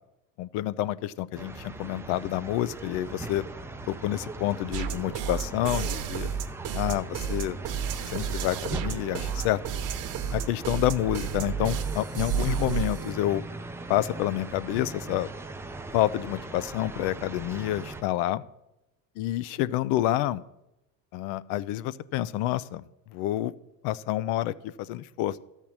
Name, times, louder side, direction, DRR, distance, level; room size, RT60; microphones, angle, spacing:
voice 1, 0.4-3.4 3.9-6.3 6.7-7.6 8.1-9.6 10.3-13.4 13.9-15.3 15.9-18.4 19.2-20.4 21.1-22.8 23.1-23.5 23.8-25.4, left 14 dB, 70° left, 18 dB, 0.6 m, -28 dB
sound 1, 1.3-18.0, right 2 dB, 5° right, 0.4 m, -40 dB
sound 2, 4.7-13.1, right 7 dB, 50° right, 1.0 m, -31 dB
13.5 x 4.6 x 8.6 m, 0.90 s
supercardioid pair, 120°, 41 cm